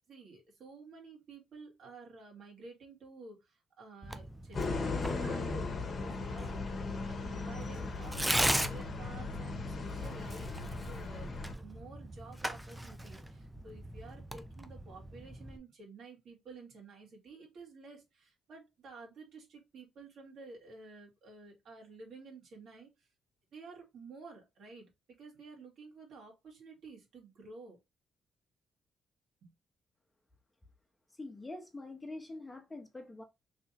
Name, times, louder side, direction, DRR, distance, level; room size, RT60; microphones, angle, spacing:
voice 1, 0.1-6.8 7.0-11.3 11.6-22.9 23.5-24.9 25.2-27.8 29.4-29.5, right 3 dB, 65° right, 1.9 m, -52 dB
Tearing, 4.0-15.6, right 1 dB, 5° right, 0.5 m, -39 dB
sound 1, 4.5-11.5, left 3 dB, 45° left, 1.0 m, -37 dB
voice 2, 31.2-33.2, left 2 dB, 15° left, 0.9 m, -45 dB
3.3 x 2.7 x 4.1 m
cardioid pair, 90°, 0 cm